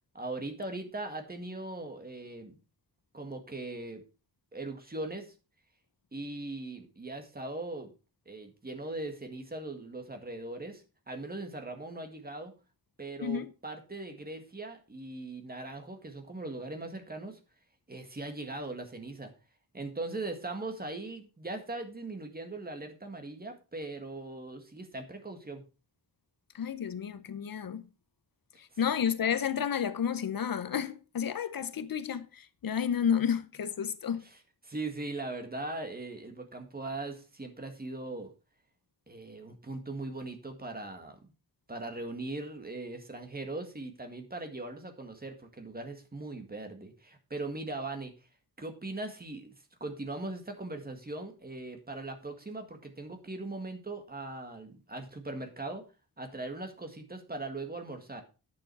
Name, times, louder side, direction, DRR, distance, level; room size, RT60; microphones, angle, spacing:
voice 1, 0.1-2.6 3.1-4.0 4.5-5.3 6.1-7.9 8.3-12.5 13.0-17.4 17.9-19.3 19.7-25.6 34.7-38.3 39.1-41.2 41.7-48.1 48.6-49.5 49.8-55.8 56.2-58.2, right 2 dB, 25° right, 1.9 m, -40 dB
voice 2, 13.2-13.5 26.5-27.9 28.6-34.2, left 8 dB, 60° left, 0.7 m, -31 dB
10.5 x 7.0 x 4.6 m
wide cardioid pair, 145°, 38 cm